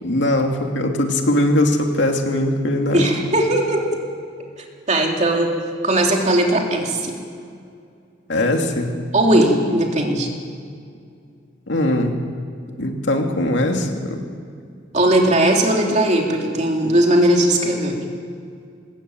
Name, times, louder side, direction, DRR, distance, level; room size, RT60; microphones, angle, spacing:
voice 1, 0.0-3.2 8.3-8.9 11.7-12.1 12.8-14.2, left 1 dB, 65° left, 3 dB, 2.5 m, -20 dB
voice 2, 2.9-3.8 4.9-5.5 5.8-7.1 9.1-10.3 14.9-18.0, right 1 dB, 35° right, 1 dB, 3.2 m, -18 dB
23.0 x 20.0 x 9.0 m, 2.3 s
head